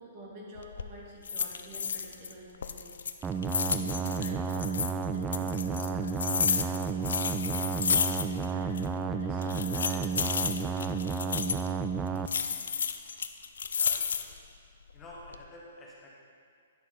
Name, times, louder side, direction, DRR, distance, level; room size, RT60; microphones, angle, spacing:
voice 1, 0.0-3.4 3.7-7.2 7.5-8.8 9.1-11.4, right 1 dB, 40° right, -3 dB, 2.0 m, -48 dB
sound 1, 0.6-0.9 1.2-2.3 2.6-4.9 5.3-8.5 8.8-8.9 9.4-11.7 12.3-14.4 14.9-15.4, left 6 dB, 75° left, 0.4 m, -31 dB
sound 2, 3.2-12.3, right 5 dB, 15° right, 0.3 m, -32 dB
voice 2, 13.7-14.3 14.9-16.3, left 1 dB, 20° left, -5 dB, 1.4 m, -50 dB
9.7 x 6.8 x 3.8 m, 2.2 s
hypercardioid pair, 140°, 0 cm